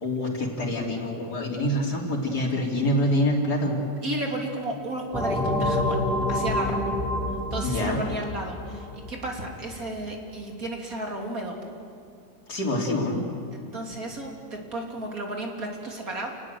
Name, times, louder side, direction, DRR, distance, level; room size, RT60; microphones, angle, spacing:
voice 1, 0.0-3.8 7.6-8.0 12.5-13.3, left 1 dB, 55° left, -1 dB, 3.8 m, -26 dB
voice 2, 4.0-6.0 6.3-6.9 7.5-11.6 13.5-16.3, right 1 dB, 45° right, 1 dB, 3.4 m, -33 dB
sound 1, 5.1-9.5, left 1 dB, ahead, 2.6 m, -27 dB
29.0 x 19.5 x 7.8 m, 2.4 s
omnidirectional pair, 2.0 m